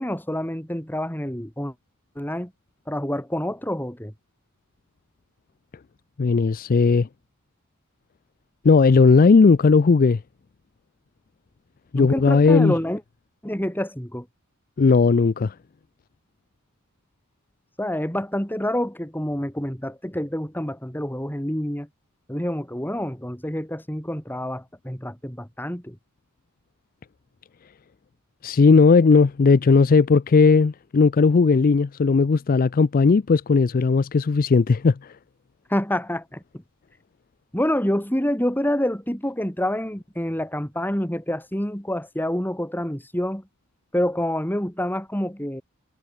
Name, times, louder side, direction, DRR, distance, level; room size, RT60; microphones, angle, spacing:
voice 1, 0.0-1.7 2.2-2.5 2.9-4.1 11.9-13.0 13.4-14.3 17.8-21.9 22.3-26.0 35.7-36.4 37.5-43.4 43.9-45.6, left 1 dB, 10° left, 4.2 m, -27 dB
voice 2, 6.2-7.1 8.6-10.2 11.9-12.7 14.8-15.5 28.4-35.1, left 4 dB, 40° left, 0.4 m, -17 dB
head